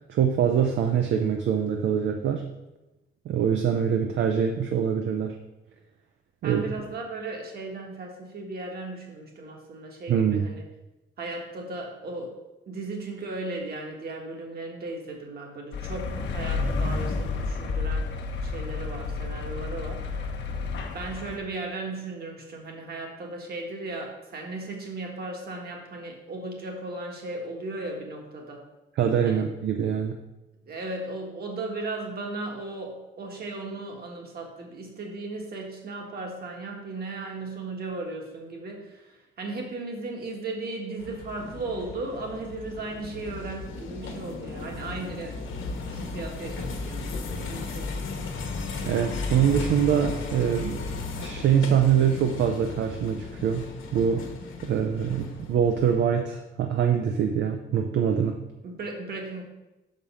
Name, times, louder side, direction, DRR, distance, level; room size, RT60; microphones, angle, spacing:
voice 1, 0.1-2.4 3.3-5.3 6.4-6.6 10.1-10.5 29.0-30.2 48.9-50.8 51.2-54.3 54.6-58.4, right 8 dB, 65° right, 4 dB, 0.6 m, -24 dB
voice 2, 6.4-10.6 11.2-12.3 12.7-18.1 18.4-20.6 20.9-28.6 29.2-29.5 30.6-45.4 45.9-48.0 58.6-59.4, right 2 dB, 50° right, 1 dB, 1.5 m, -36 dB
sound 1, 15.7-21.4, left 4 dB, 60° left, 0.9 m, -30 dB
sound 2, 41.0-56.0, left 3 dB, 80° left, 1.2 m, -35 dB
6.2 x 5.3 x 5.5 m, 0.99 s
wide cardioid pair, 175°, 20 cm